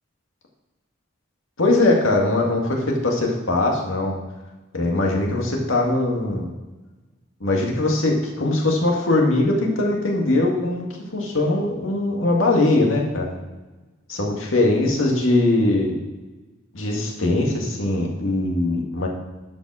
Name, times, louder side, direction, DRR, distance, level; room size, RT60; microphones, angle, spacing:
voice 1, 1.6-4.1 4.7-6.5 7.4-10.9 11.1-13.3 14.1-15.9 16.7-19.1, left 2 dB, 75° left, -1 dB, 2.0 m, -21 dB
11.5 x 5.4 x 4.9 m, 1.2 s
head